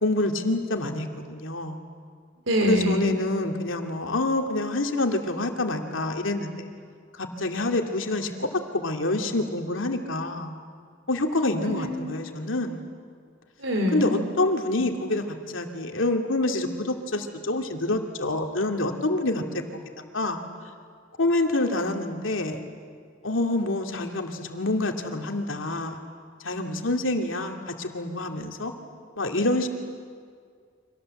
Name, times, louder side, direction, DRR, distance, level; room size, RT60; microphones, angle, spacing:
voice 1, 0.0-1.8 2.7-6.7 7.1-10.6 11.1-12.8 13.9-19.4 20.1-20.4 21.2-22.6 23.2-26.0 26.4-28.7 29.2-29.7, left 2 dB, 90° left, 4 dB, 2.5 m, -27 dB
voice 2, 2.5-3.2 11.6-12.1 13.6-14.2, equal, 85° right, 5 dB, 4.2 m, -25 dB
30.0 x 25.5 x 7.8 m, 2.1 s
head